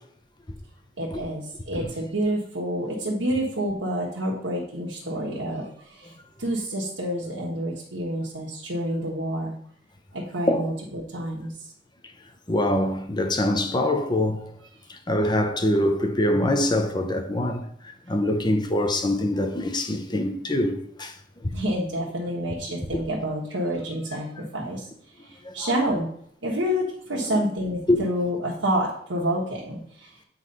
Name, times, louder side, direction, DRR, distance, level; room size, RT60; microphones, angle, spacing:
voice 1, 1.0-9.5 10.1-11.6 21.5-24.9 25.2-26.1 26.4-30.2, equal, 85° right, 1.4 m, -28 dB
voice 2, 12.5-14.4 14.9-17.7 18.1-21.1 21.4-21.5 25.4-25.7 27.3-27.4 27.9-28.0, left 1 dB, 25° left, 0.8 m, -24 dB
8.1 x 3.2 x 5.3 m
head